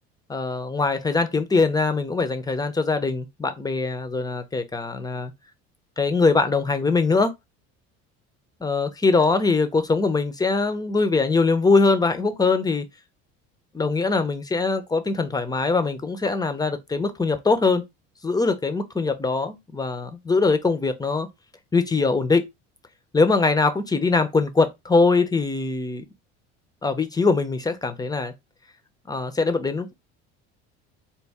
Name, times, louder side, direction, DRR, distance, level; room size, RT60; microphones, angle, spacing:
voice 1, 0.3-5.3 6.0-7.3 8.6-12.9 13.7-17.8 18.2-21.3 21.7-22.4 23.1-26.0 26.8-28.3 29.1-29.9, left 3 dB, 10° left, 0.7 m, -22 dB
4.2 x 2.2 x 3.5 m
supercardioid pair, 100°, 31 cm